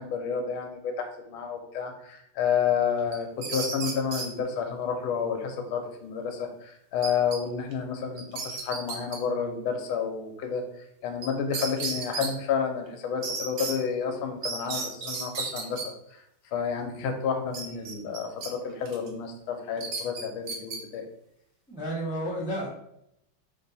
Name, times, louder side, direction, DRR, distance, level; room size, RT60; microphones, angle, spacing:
voice 1, 0.0-10.6 11.0-15.8 16.5-21.0, left 6 dB, 80° left, 5 dB, 1.4 m, -30 dB
sound 1, 3.1-4.3 7.0-7.4 7.7-7.8 8.2-9.2 11.2-11.3 11.5-12.3 13.2-13.7 14.4-15.9 17.5-18.5 18.9-19.1 19.8-20.8, right 4 dB, 70° right, 0.8 m, -33 dB
voice 2, 21.7-22.7, right 1 dB, 5° right, -6 dB, 0.4 m, -31 dB
3.4 x 2.7 x 3.9 m, 0.78 s
omnidirectional pair, 2.3 m